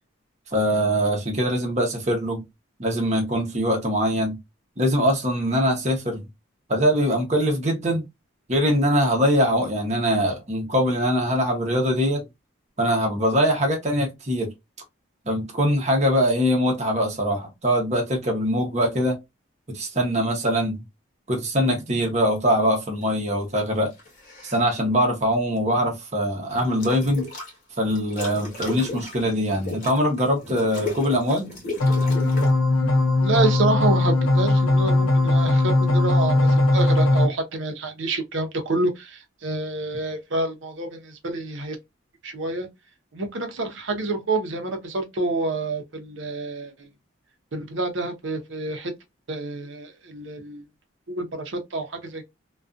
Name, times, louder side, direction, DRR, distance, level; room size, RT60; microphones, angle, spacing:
voice 1, 0.5-2.4 2.8-4.4 4.8-6.2 6.7-8.0 8.5-12.3 12.8-14.5 15.3-19.2 19.7-20.8 21.3-23.9 24.4-27.3 27.8-31.5, equal, 35° right, 0.8 m, -22 dB
sound 1, 23.9-24.6 26.5-27.5 27.9-32.5, left 2 dB, 40° left, 1.1 m, -35 dB
sound 2, 31.8-37.3, left 2 dB, 90° left, 0.8 m, -19 dB
voice 2, 33.2-41.8 42.2-42.7 43.1-46.9 47.5-48.9 49.3-50.6 51.2-52.3, right 2 dB, 65° right, 0.7 m, -28 dB
2.5 x 2.3 x 2.3 m
head